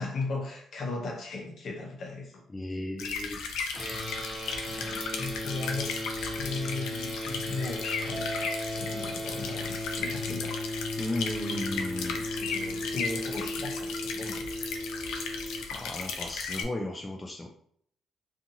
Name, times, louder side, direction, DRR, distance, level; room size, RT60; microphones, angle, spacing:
voice 1, 0.0-2.4 4.6-5.9 6.3-10.6 12.4-14.5, left 3 dB, 60° left, 1 dB, 0.7 m, -37 dB
voice 2, 2.5-3.4 4.6-4.8 11.0-12.2 15.7-17.5, left 1 dB, 20° left, 1 dB, 0.4 m, -35 dB
sound 1, 3.0-16.6, left 5 dB, 90° left, 0.4 m, -36 dB
sound 2, 3.7-15.6, left 1 dB, ahead, 1.1 m, -36 dB
Mallet percussion, 8.1-10.6, right 1 dB, 55° right, 0.4 m, -41 dB
2.5 x 2.4 x 2.7 m, 0.66 s
cardioid pair, 90°, 0 cm